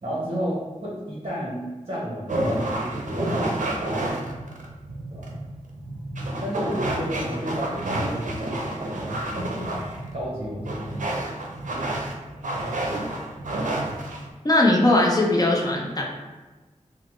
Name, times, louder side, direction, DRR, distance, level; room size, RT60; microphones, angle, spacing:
voice 1, 0.0-1.6 1.9-4.0 5.1-5.3 6.4-11.2, equal, 45° right, -6 dB, 0.9 m, -32 dB
sound 1, 2.3-14.3, right 1 dB, 80° right, 0.5 m, -29 dB
voice 2, 14.4-16.0, left 1 dB, 30° left, -1 dB, 0.6 m, -19 dB
3.0 x 2.1 x 3.1 m, 1.2 s
wide cardioid pair, 55°, 13 cm